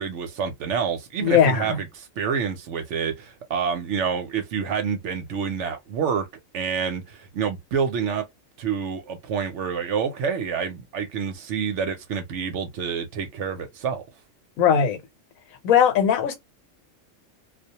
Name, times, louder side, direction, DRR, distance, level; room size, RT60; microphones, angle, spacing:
voice 1, 0.0-6.3 6.5-8.2 8.6-14.0, right 6 dB, 65° right, 0.8 m, -28 dB
voice 2, 1.2-1.8 14.6-15.0 15.6-16.3, left 8 dB, 80° left, 1.1 m, -19 dB
2.3 x 2.1 x 2.8 m
omnidirectional pair, 1.4 m